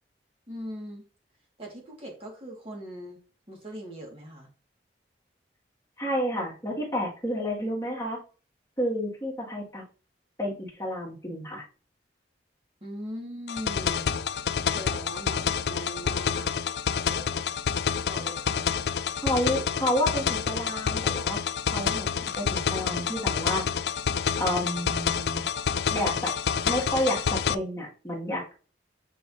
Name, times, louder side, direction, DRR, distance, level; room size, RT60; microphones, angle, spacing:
voice 1, 0.5-1.1 1.6-3.2 3.5-4.5 12.8-16.6 16.9-17.5 18.1-18.7 25.9-26.0, equal, 30° right, -1 dB, 2.1 m, -40 dB
voice 2, 6.0-8.2 8.8-9.8 10.4-11.6 19.2-21.4 21.7-23.7 24.4-25.5 25.9-26.3 26.6-28.5, equal, 15° left, -4 dB, 2.1 m, -30 dB
sound 1, 13.5-27.5, left 7 dB, 65° left, 0.4 m, -28 dB
8.9 x 5.0 x 2.8 m, 0.36 s
head